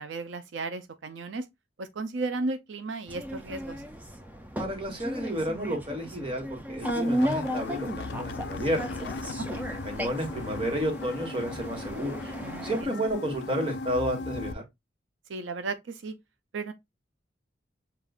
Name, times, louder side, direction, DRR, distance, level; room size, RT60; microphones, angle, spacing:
voice 1, 0.0-1.5 1.8-3.8 9.5-9.7 12.4-12.9 15.3-16.1 16.5-16.7, right 3 dB, 85° right, 0.5 m, -35 dB
sound 1, 3.1-12.8, equal, 10° right, 0.4 m, -35 dB
voice 2, 4.6-8.8 9.8-12.3 12.6-14.6, equal, 30° right, 1.2 m, -31 dB
sound 2, 6.8-14.5, left 3 dB, 65° left, 0.4 m, -37 dB
6.5 x 2.4 x 2.3 m
head